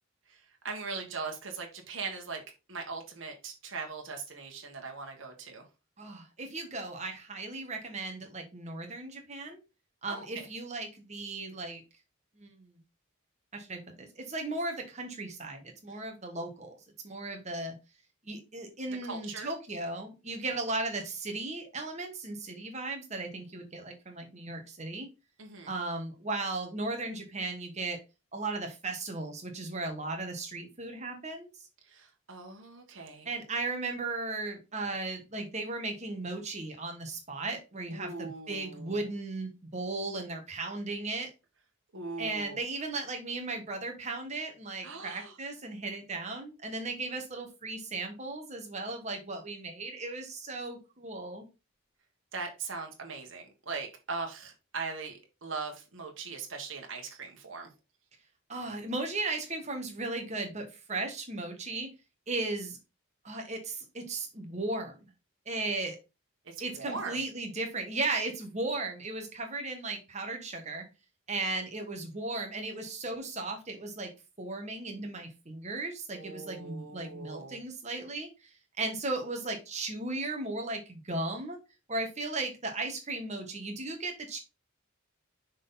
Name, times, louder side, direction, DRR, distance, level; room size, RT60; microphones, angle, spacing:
voice 1, 0.6-2.4 2.7-5.6 10.1-10.5 18.9-19.5 25.4-25.7 31.9-33.3 37.9-39.1 41.9-42.6 44.8-45.3 52.3-57.7 66.4-67.2 76.1-77.6, right 4 dB, 60° right, 2 dB, 1.5 m, -40 dB
voice 2, 6.0-9.6 10.0-11.8 12.4-12.8 13.5-16.7 17.0-17.7 18.2-25.1 25.7-28.0 28.3-31.5 33.2-41.3 42.2-51.4 58.5-61.9 62.3-62.8 63.2-65.1 65.4-66.0 66.6-70.8 71.3-74.1 74.4-78.5 78.8-81.6 81.9-84.4, right 2 dB, 30° right, 4 dB, 1.4 m, -36 dB
6.3 x 4.0 x 4.0 m, 0.28 s
head